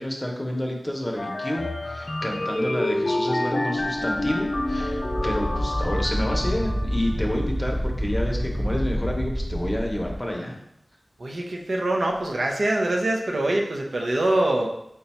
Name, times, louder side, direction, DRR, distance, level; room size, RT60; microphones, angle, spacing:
voice 1, 0.0-10.6, left 1 dB, 25° left, 0 dB, 0.8 m, -29 dB
sound 1, 1.2-7.2, left 1 dB, 45° left, 0.4 m, -28 dB
Wind, 3.8-10.2, equal, 35° right, 0.8 m, -28 dB
voice 2, 11.2-14.7, right 1 dB, 80° right, 0 dB, 0.6 m, -24 dB
3.9 x 2.3 x 4.2 m, 0.78 s
wide cardioid pair, 60°, 0 cm